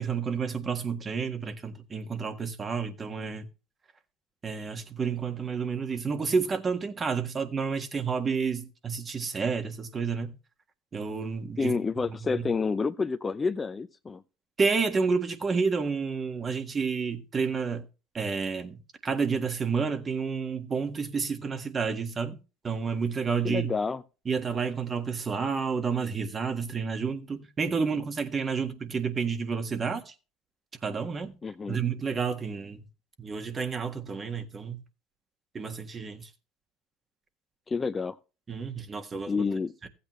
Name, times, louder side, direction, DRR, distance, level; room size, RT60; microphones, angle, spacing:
voice 1, 0.0-3.5 4.4-10.3 10.9-11.7 12.2-12.5 14.6-17.9 18.1-22.4 22.6-23.7 24.2-30.1 30.8-31.3 31.7-32.8 33.2-34.8 35.5-36.3 38.5-39.4 39.8-39.9, right 5 dB, 30° right, 1.5 m, -30 dB
voice 2, 11.6-14.2 23.4-24.0 31.4-31.8 37.7-38.2 39.3-39.7, left 4 dB, 20° left, 0.6 m, -29 dB
15.0 x 8.4 x 3.1 m
hypercardioid pair, 90°, 0 cm